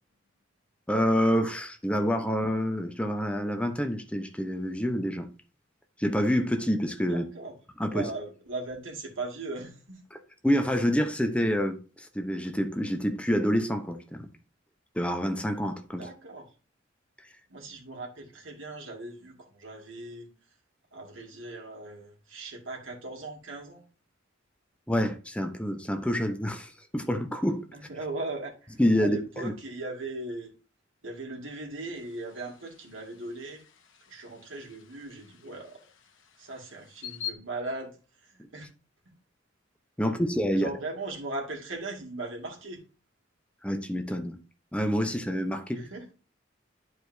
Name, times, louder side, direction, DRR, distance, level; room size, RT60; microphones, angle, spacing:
voice 1, 0.9-5.3 6.0-7.3 7.8-8.1 10.4-14.3 14.9-16.1 24.9-27.7 28.8-29.5 40.0-40.7 43.6-44.4 44.7-45.8, equal, 5° left, 0.8 m, -27 dB
voice 2, 7.1-7.5 7.9-10.0 15.9-16.4 17.5-20.3 20.9-23.8 27.7-30.5 31.0-33.6 34.1-35.8 36.4-38.0 38.2-38.7 40.5-42.8 45.7-46.1, right 2 dB, 90° right, 2.3 m, -38 dB
sound 1, 31.9-37.3, left 9 dB, 85° left, 1.1 m, -46 dB
11.0 x 4.8 x 2.7 m
head